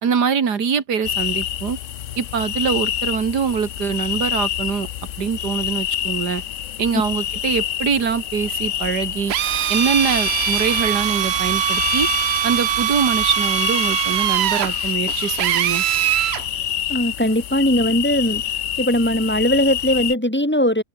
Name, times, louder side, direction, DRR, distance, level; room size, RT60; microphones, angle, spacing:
voice 1, 0.0-1.8 2.2-4.9 5.2-6.4 6.8-9.3 9.7-12.1 12.4-15.8, right 6 dB, 65° right, 2.5 m, -23 dB
sound 1, 1.0-20.1, left 11 dB, 60° left, 0.9 m, -27 dB
Drill, 9.3-16.4, right 11 dB, 85° right, 0.5 m, -22 dB
voice 2, 16.9-18.4 18.8-20.8, left 1 dB, 5° left, 2.2 m, -19 dB
open air
omnidirectional pair, 1.9 m